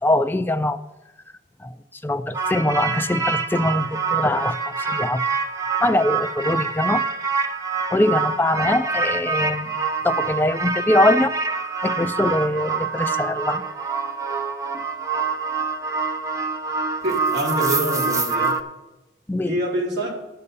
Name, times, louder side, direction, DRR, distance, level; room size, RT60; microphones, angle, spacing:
voice 1, 0.0-0.8 1.6-1.7 2.0-5.2 5.8-7.0 7.9-9.7 10.0-11.3 11.8-13.6 19.3-19.6, left 1 dB, 10° left, 7 dB, 0.4 m, -22 dB
sound 1, 2.3-18.6, right 4 dB, 20° right, 0.7 m, -25 dB
voice 2, 17.0-18.5 19.4-20.1, right 1 dB, 75° right, -3 dB, 3.4 m, -25 dB
9.4 x 6.8 x 6.8 m, 1.0 s
head